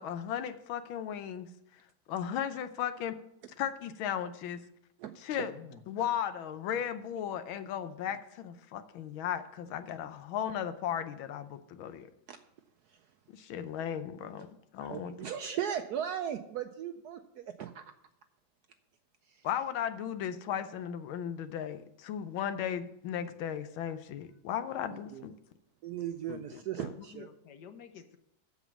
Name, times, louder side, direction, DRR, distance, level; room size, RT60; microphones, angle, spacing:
voice 1, 0.0-1.5 2.1-3.2 3.6-4.6 5.2-5.5 5.9-12.1 13.3-14.5 14.7-15.2 19.4-25.4 26.3-26.9, left 9 dB, 85° left, 11 dB, 1.6 m, -36 dB
voice 2, 5.3-5.8 27.0-28.2, left 7 dB, 65° left, 8 dB, 1.4 m, -50 dB
voice 3, 14.8-17.9 19.3-19.4 24.9-25.3 25.8-27.3, right 9 dB, 75° right, 9 dB, 0.9 m, -37 dB
8.0 x 7.1 x 7.1 m, 0.78 s
omnidirectional pair, 2.1 m